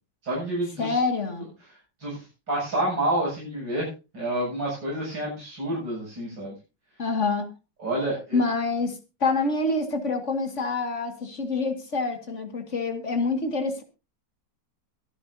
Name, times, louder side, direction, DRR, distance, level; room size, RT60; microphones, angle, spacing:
voice 1, 0.2-1.0 2.0-6.5 7.8-8.4, right 1 dB, 85° right, 8.4 m, -29 dB
voice 2, 0.8-1.5 7.0-7.5 8.3-13.8, left 3 dB, 40° left, 2.3 m, -26 dB
23.0 x 10.5 x 2.8 m
omnidirectional pair, 1.9 m